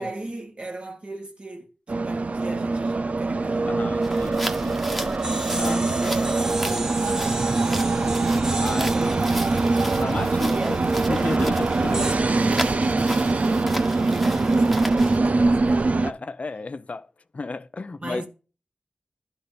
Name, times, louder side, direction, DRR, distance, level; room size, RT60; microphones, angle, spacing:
voice 1, 0.0-4.2 5.5-8.2 8.7-10.1 10.5-10.8 11.1-11.6 11.8-16.2 18.0-18.3, right 2 dB, 50° right, 1.9 m, -37 dB
sound 1, 1.9-16.1, right 3 dB, 65° right, 0.5 m, -23 dB
voice 2, 3.7-5.2 5.6-5.8 8.6-8.9 9.9-10.8 11.1-12.0 15.3-15.6 15.9-18.2, left 3 dB, 60° left, 0.6 m, -33 dB
sound 2, 4.0-15.2, equal, 5° right, 1.3 m, -35 dB
sound 3, 5.2-10.9 11.9-12.1, right 1 dB, 25° right, 2.0 m, -35 dB
11.5 x 4.1 x 6.7 m
wide cardioid pair, 55°, 3 cm